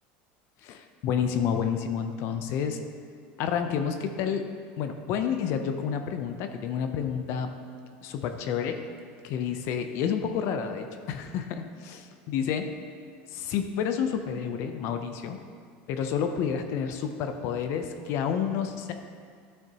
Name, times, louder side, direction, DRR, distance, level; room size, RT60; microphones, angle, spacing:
voice 1, 0.6-2.8 3.4-4.5 4.8-7.5 8.0-8.8 9.2-12.7 13.3-15.4 15.9-18.9, left 7 dB, 55° left, 7 dB, 0.6 m, -29 dB
12.0 x 6.5 x 2.9 m, 2.1 s
supercardioid pair, 135°, 5 cm